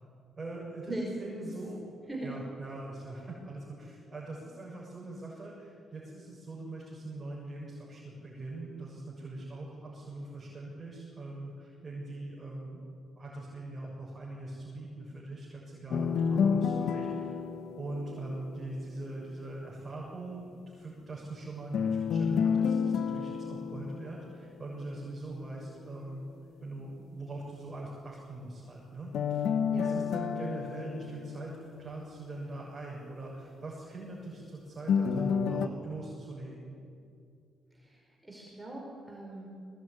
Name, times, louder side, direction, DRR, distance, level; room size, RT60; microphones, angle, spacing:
voice 1, 0.4-1.8 2.2-12.8 13.1-17.3 17.7-26.2 26.6-29.4 29.7-36.7, right 2 dB, 25° right, -4 dB, 6.8 m, -42 dB
sound 1, 15.9-19.0 21.7-25.0 29.1-32.2 34.9-35.7, left 6 dB, 70° left, 1.2 m, -30 dB
voice 2, 37.7-39.5, right 1 dB, 10° right, -2 dB, 5.3 m, -40 dB
21.5 x 19.0 x 9.9 m, 2.5 s
cardioid pair, 90°, 0 cm